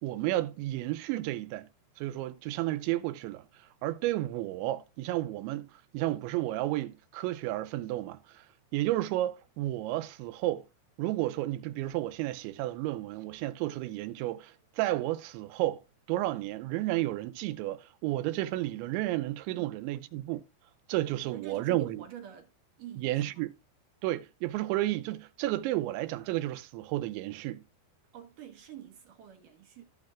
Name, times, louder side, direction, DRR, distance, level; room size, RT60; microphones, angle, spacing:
voice 1, 0.0-1.7 2.0-3.5 3.8-8.5 8.7-10.6 11.0-15.8 16.1-20.4 20.9-22.0 23.0-23.5 24.0-27.6, right 16 dB, 90° right, 3.0 m, -32 dB
voice 2, 19.5-20.0 21.1-22.5 22.8-23.5 28.1-29.8, right 10 dB, 70° right, 2.1 m, -47 dB
15.0 x 6.6 x 2.3 m
omnidirectional pair, 5.2 m